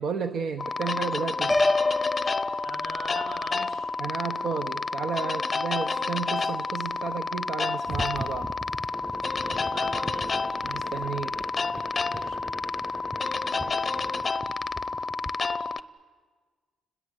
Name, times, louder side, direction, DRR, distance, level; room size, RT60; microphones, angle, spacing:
voice 1, 0.0-1.5 4.0-8.5 10.6-11.4, right 6 dB, 60° right, 8 dB, 1.0 m, -32 dB
sound 1, 0.6-15.8, left 4 dB, 30° left, 0.7 m, -30 dB
Piano, 1.5-3.4, left 2 dB, 10° left, 1.0 m, -27 dB
voice 2, 2.6-3.9 9.4-10.4 12.1-12.4, right 4 dB, 80° right, 7 dB, 2.0 m, -42 dB
sound 2, 7.9-15.3, right 1 dB, 5° right, 0.7 m, -40 dB
29.5 x 21.0 x 8.1 m, 1.5 s
cardioid pair, 90°, 0 cm